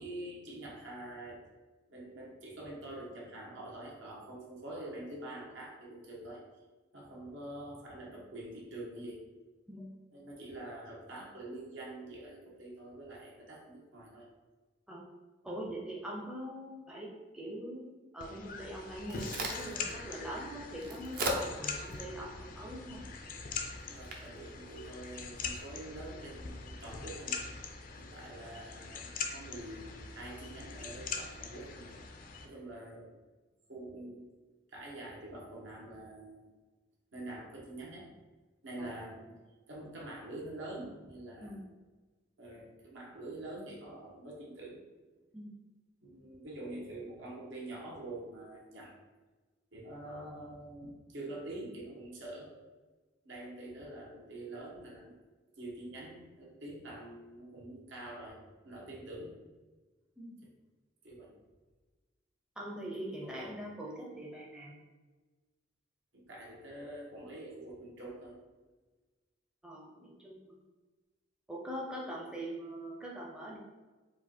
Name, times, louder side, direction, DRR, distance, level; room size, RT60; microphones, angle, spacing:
voice 1, 0.0-1.4 1.9-6.4 6.9-9.2 10.1-14.2 23.8-27.4 28.0-31.9 32.4-33.1 33.7-34.3 34.7-36.5 37.1-38.1 38.6-39.4 39.7-41.6 42.4-44.8 46.0-48.9 49.7-52.5 53.2-55.1 55.6-58.4 58.6-59.3 61.0-61.3 63.2-63.6 66.1-68.4, right 1 dB, 75° right, -4 dB, 1.3 m, -45 dB
voice 2, 15.4-23.1 38.8-39.0 41.4-41.6 45.3-45.5 60.2-60.4 62.6-64.7 69.6-70.6 71.5-73.6, right 1 dB, 5° right, -4 dB, 0.5 m, -42 dB
sound 1, 18.2-32.4, left 5 dB, 45° left, 0.4 m, -43 dB
Crack, 18.7-25.6, right 1 dB, 50° right, 0.6 m, -42 dB
4.7 x 2.5 x 4.3 m, 1.3 s
head